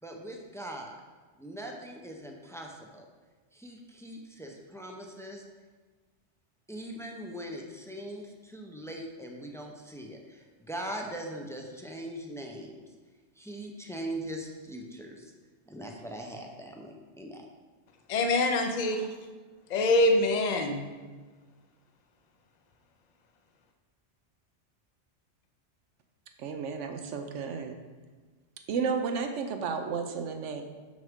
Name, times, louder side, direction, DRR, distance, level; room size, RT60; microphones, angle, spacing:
voice 1, 0.0-1.0 1.4-3.1 3.5-5.4 6.7-12.9 13.4-15.3 15.7-17.4, right 1 dB, 5° left, 1 dB, 0.4 m, -41 dB
voice 2, 18.1-19.1 19.7-20.9, left 2 dB, 45° left, 5 dB, 0.7 m, -25 dB
voice 3, 26.4-27.7 28.7-30.6, right 5 dB, 85° right, 6 dB, 1.0 m, -32 dB
6.2 x 6.1 x 3.6 m, 1.4 s
omnidirectional pair, 1.2 m